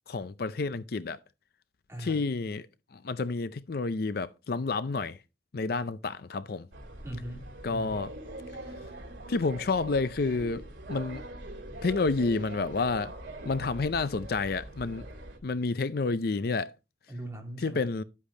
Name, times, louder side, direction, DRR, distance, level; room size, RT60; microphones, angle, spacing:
voice 1, 0.1-1.2 2.0-5.2 5.5-6.7 7.6-8.1 9.3-11.2 11.8-13.1 13.4-15.1 15.4-16.8 17.6-18.0, left 3 dB, 55° left, 0.5 m, -30 dB
voice 2, 1.9-2.2 7.0-7.9 17.1-17.9, right 1 dB, 15° right, 3.0 m, -40 dB
sound 1, 6.7-15.4, right 1 dB, 80° right, 2.8 m, -42 dB
11.5 x 8.3 x 2.8 m
head